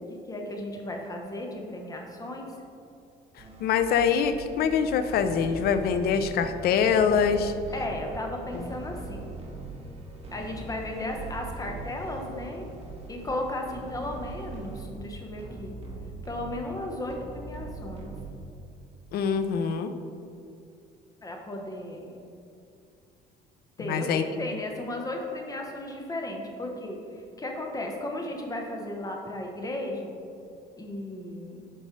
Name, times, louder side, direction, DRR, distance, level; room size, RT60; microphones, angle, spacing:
voice 1, 0.1-2.5 7.7-9.3 10.3-12.7 13.1-15.7 16.2-18.1 21.2-22.1 23.8-30.2 30.8-31.6, left 1 dB, 20° left, 1 dB, 1.1 m, -35 dB
sound 1, 3.4-18.8, right 3 dB, 35° right, 1.6 m, -41 dB
voice 2, 3.6-7.5 8.5-8.7 19.1-19.9 23.8-24.2, left 6 dB, 65° left, 10 dB, 0.6 m, -24 dB
11.0 x 5.2 x 3.2 m, 2.5 s
cardioid pair, 110°, 17 cm